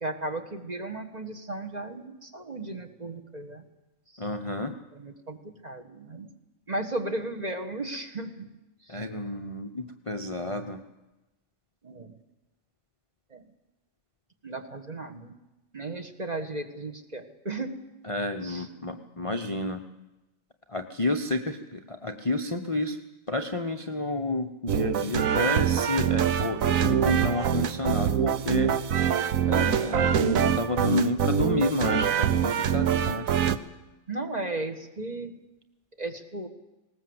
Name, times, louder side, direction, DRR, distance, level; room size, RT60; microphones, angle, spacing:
voice 1, 0.0-3.6 5.0-6.3 6.7-8.5 11.8-12.1 13.3-13.4 14.4-15.3 15.7-17.8 18.4-18.7 34.1-35.3 36.0-36.5, right 2 dB, 30° right, 6 dB, 1.5 m, -35 dB
voice 2, 4.2-4.7 8.9-10.8 18.0-19.8 20.7-23.0 23.3-28.7 29.5-33.4, left 2 dB, 30° left, 6 dB, 0.7 m, -30 dB
sound 1, 24.7-33.6, right 9 dB, 75° right, 1.3 m, -24 dB
19.5 x 18.5 x 7.9 m, 1.0 s
omnidirectional pair, 1.4 m